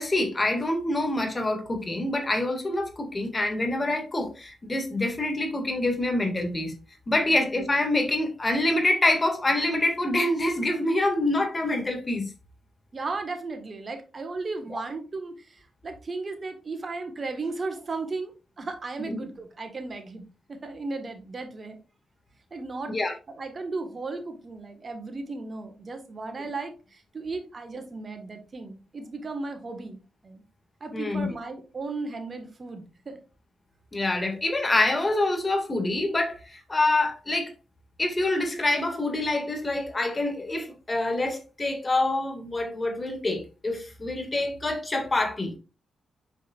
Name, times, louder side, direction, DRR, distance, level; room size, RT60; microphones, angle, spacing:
voice 1, 0.0-6.7 7.1-12.3 14.7-14.8 19.1-19.3 22.9-23.1 30.9-31.3 33.9-37.5 38.0-45.6, left 2 dB, 30° left, 2.1 m, -26 dB
voice 2, 12.9-15.6 15.8-18.3 18.6-21.8 22.5-23.0 23.4-30.4 30.8-33.2, right 3 dB, 45° right, 1.5 m, -35 dB
7.5 x 5.2 x 2.5 m
hypercardioid pair, 45°, 0 cm